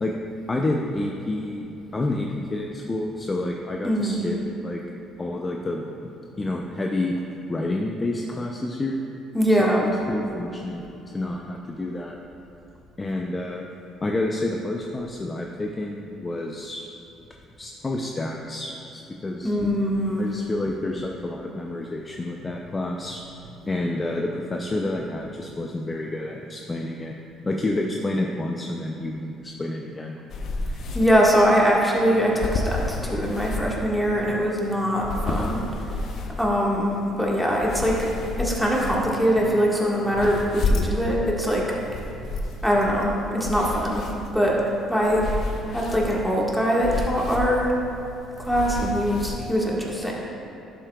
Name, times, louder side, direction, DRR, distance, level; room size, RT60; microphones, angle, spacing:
voice 1, 0.5-1.7 1.9-4.4 4.6-4.8 5.2-7.2 7.5-9.0 9.6-10.8 11.1-12.2 13.0-13.6 14.0-16.9 17.6-19.6 20.2-23.2 23.6-27.2 27.4-30.2, left 2 dB, 25° left, 1 dB, 0.5 m, -29 dB
voice 2, 3.8-4.2 9.3-9.9 19.4-20.2 30.9-35.6 36.4-38.0 38.4-41.6 42.6-44.0 44.3-44.6 44.9-45.2 45.7-47.7 48.4-50.1, equal, 5° left, -4 dB, 1.6 m, -22 dB
sound 1, 30.3-49.3, left 2 dB, 60° left, 0.8 m, -31 dB
11.0 x 7.4 x 2.3 m, 2.9 s
cardioid pair, 105°, 0 cm